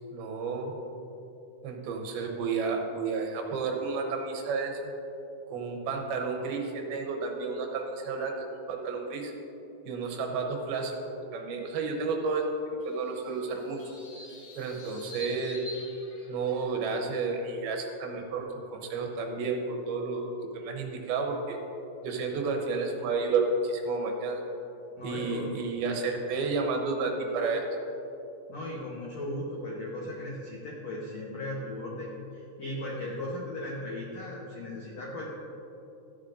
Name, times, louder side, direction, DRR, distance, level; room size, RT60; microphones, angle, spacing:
voice 1, 0.1-0.7 1.6-4.9 5.5-9.3 9.9-11.0 11.3-12.5 12.8-13.8 14.6-15.6 16.3-21.6 22.0-24.4 25.0-27.6, right 4 dB, 75° right, 2 dB, 2.6 m, -31 dB
sound 1, 12.8-16.8, equal, 65° left, 0.8 m, -47 dB
voice 2, 25.0-25.5 28.5-35.3, left 1 dB, 85° left, -4 dB, 1.5 m, -37 dB
13.5 x 9.6 x 2.6 m, 2.8 s
omnidirectional pair, 4.7 m